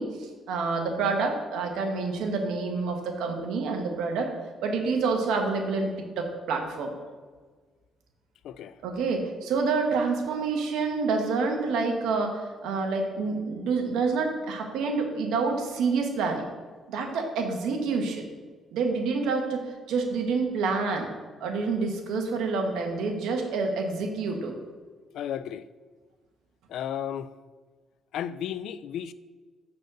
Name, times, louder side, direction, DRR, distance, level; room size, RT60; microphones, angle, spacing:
voice 1, 0.0-4.3 4.6-6.9 8.8-16.4 16.9-18.2 18.7-21.1 21.4-24.5, right 4 dB, 85° right, 1.3 m, -28 dB
voice 2, 8.4-8.8 25.1-25.6 26.7-27.3 28.1-29.1, left 9 dB, 80° left, 0.3 m, -33 dB
6.4 x 4.2 x 6.5 m
cardioid pair, 90°, 0 cm